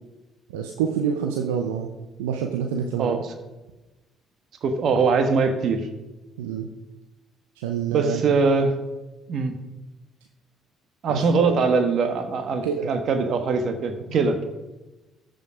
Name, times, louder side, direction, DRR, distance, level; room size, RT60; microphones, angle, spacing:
voice 1, 0.5-1.9 2.2-3.2 6.4-6.7 7.6-8.2 11.1-11.6 12.6-12.9, right 7 dB, 85° right, 3 dB, 0.7 m, -27 dB
voice 2, 3.0-3.3 4.6-5.9 7.9-8.7 9.3-9.5 11.0-14.4, right 4 dB, 60° right, 7 dB, 1.4 m, -22 dB
13.5 x 5.2 x 4.9 m, 1.1 s
hypercardioid pair, 55°, 0 cm